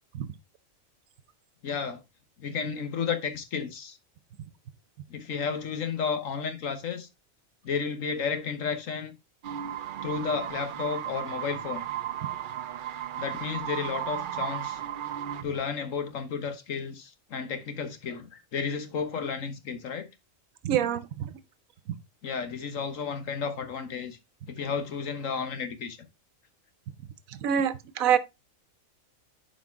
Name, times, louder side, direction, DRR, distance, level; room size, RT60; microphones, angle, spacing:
voice 1, 1.6-2.0 2.4-4.0 5.1-7.1 7.6-9.2 10.0-11.8 13.2-14.8 15.4-20.1 22.2-24.2 24.5-26.0, left 6 dB, 75° left, 1.5 m, -32 dB
sound 1, 9.4-15.4, right 11 dB, 60° right, 0.5 m, -35 dB
voice 2, 20.6-21.4 21.9-22.0 27.3-28.2, right 9 dB, 85° right, 1.1 m, -26 dB
9.2 x 5.1 x 3.5 m
omnidirectional pair, 1.4 m